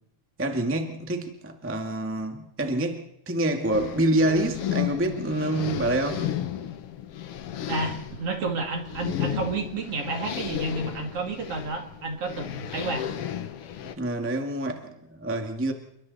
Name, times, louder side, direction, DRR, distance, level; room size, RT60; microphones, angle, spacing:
voice 1, 0.4-6.3 14.0-15.7, right 1 dB, 5° right, 4 dB, 1.5 m, -27 dB
sound 1, 3.7-13.9, left 10 dB, 60° left, 1.8 m, -33 dB
voice 2, 7.7-13.1, right 3 dB, 50° right, 3 dB, 3.4 m, -31 dB
29.5 x 22.5 x 4.2 m, 0.81 s
omnidirectional pair, 3.5 m